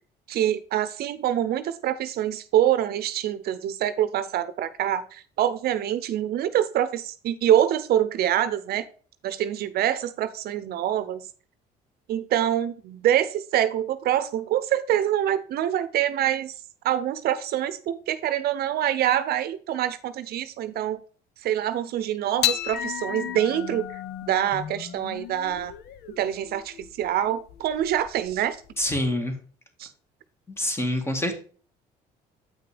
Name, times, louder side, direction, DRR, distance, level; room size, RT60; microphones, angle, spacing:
voice 1, 0.3-8.8 9.2-11.2 12.1-16.5 16.8-21.0 21.4-25.7 26.2-28.6 29.8-29.9, right 11 dB, 70° right, 13 dB, 0.7 m, -25 dB
sound 1, 22.4-29.0, left 11 dB, 70° left, 0.8 m, -33 dB
voice 2, 28.8-29.3 30.6-31.4, left 1 dB, 15° left, 6 dB, 1.9 m, -26 dB
8.6 x 5.9 x 3.4 m, 0.41 s
cardioid pair, 110°, 17 cm